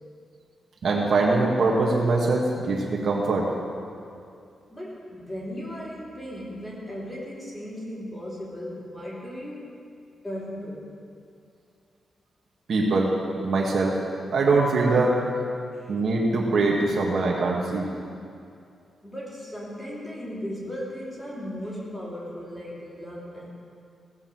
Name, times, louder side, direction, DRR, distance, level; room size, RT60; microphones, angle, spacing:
voice 1, 0.8-3.5 12.7-13.1 13.4-14.0 14.3-15.2 15.9-17.9, right 3 dB, 55° right, -2 dB, 1.8 m, -22 dB
voice 2, 4.7-9.8 10.2-10.9 15.7-15.9 19.0-23.5, equal, 15° left, -6 dB, 3.1 m, -36 dB
17.0 x 6.6 x 7.8 m, 2.5 s
wide cardioid pair, 175°, 0 cm